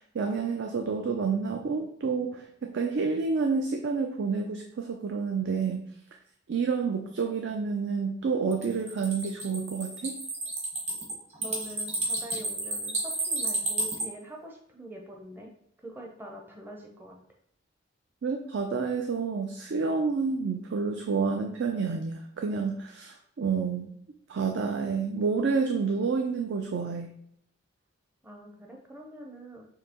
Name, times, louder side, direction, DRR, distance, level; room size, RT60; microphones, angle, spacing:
voice 1, 0.0-5.9 6.5-10.2 18.2-23.9 24.3-27.1, right 5 dB, 60° right, 3 dB, 0.4 m, -29 dB
sound 1, 8.5-14.0, right 2 dB, 35° right, 1.2 m, -31 dB
voice 2, 11.4-15.5 15.8-17.2 28.2-29.7, right 1 dB, 10° right, 0 dB, 0.6 m, -44 dB
6.4 x 2.7 x 2.9 m, 0.70 s
head